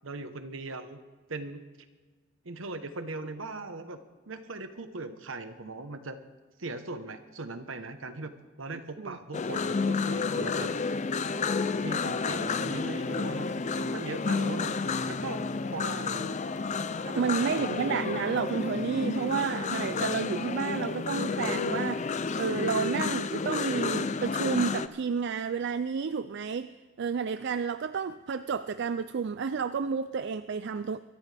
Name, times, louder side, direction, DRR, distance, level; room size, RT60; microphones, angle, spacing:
voice 1, 0.0-1.0 1.3-1.6 2.4-4.0 4.3-6.2 6.6-10.7 11.8-14.7 15.0-16.4 17.0-17.7, right 3 dB, 80° right, 9 dB, 1.1 m, -39 dB
sound 1, 9.3-24.9, left 4 dB, 35° left, 0.5 m, -31 dB
voice 2, 17.2-26.7 27.0-31.0, right 6 dB, 60° right, 12 dB, 0.4 m, -31 dB
22.5 x 14.0 x 3.5 m, 1.4 s
head